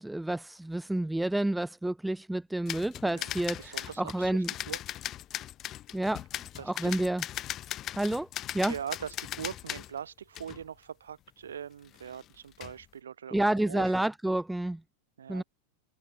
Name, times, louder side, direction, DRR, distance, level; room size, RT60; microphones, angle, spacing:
voice 1, 0.0-4.5 5.9-6.2 6.6-7.2 8.0-8.3 8.5-8.7 13.3-14.8 15.3-15.4, right 1 dB, 5° right, 1.2 m, -29 dB
sound 1, 2.7-9.9 10.3-10.6 12.0-12.2 12.5-12.8, left 13 dB, 30° left, 3.1 m, -38 dB
voice 2, 3.1-4.8 6.6-7.0 8.7-13.9 15.2-15.4, right 8 dB, 65° right, 6.9 m, -42 dB
figure-of-eight pair, 90°, 0 cm